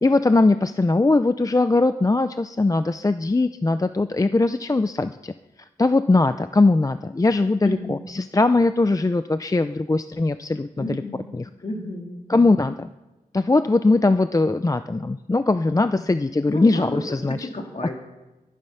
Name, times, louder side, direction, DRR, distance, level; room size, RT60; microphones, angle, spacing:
voice 1, 0.0-5.3 5.8-11.0 11.3-11.5 12.3-12.9 13.3-17.5, left 2 dB, 25° left, 11 dB, 0.5 m, -20 dB
voice 2, 7.6-8.0 10.8-11.2 11.6-12.2 15.9-16.0 16.5-17.0 17.3-17.9, left 1 dB, 50° left, 1 dB, 3.2 m, -31 dB
22.5 x 11.0 x 5.7 m, 1.1 s
wide cardioid pair, 80°, 15 cm